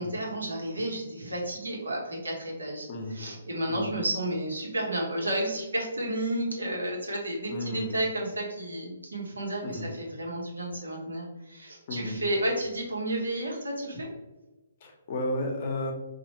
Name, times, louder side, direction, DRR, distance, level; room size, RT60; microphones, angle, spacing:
voice 1, 0.0-14.1, right 1 dB, 85° right, -2 dB, 1.0 m, -32 dB
voice 2, 7.5-7.9 9.6-9.8 11.9-12.2 14.8-15.9, left 1 dB, 50° left, 3 dB, 0.7 m, -32 dB
3.1 x 2.4 x 2.9 m, 1.1 s
hypercardioid pair, 135°, 0 cm